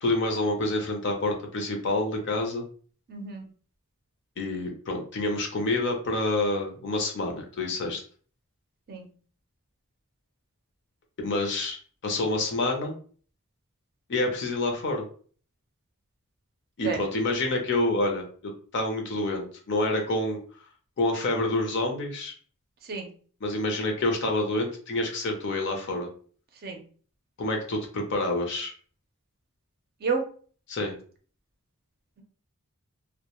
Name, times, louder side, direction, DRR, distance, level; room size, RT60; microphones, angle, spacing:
voice 1, 0.0-2.7 4.4-8.0 11.2-11.8 12.0-13.0 14.1-15.1 16.8-20.4 21.0-22.3 23.4-26.1 27.4-28.7 30.7-30.9, left 2 dB, 55° left, 3 dB, 0.6 m, -28 dB
voice 2, 3.1-3.4 8.9-9.1 16.8-17.0 22.9-23.1 26.6-26.8 30.0-30.2, right 5 dB, 45° right, 4 dB, 0.5 m, -29 dB
2.2 x 2.1 x 2.9 m, 0.44 s
head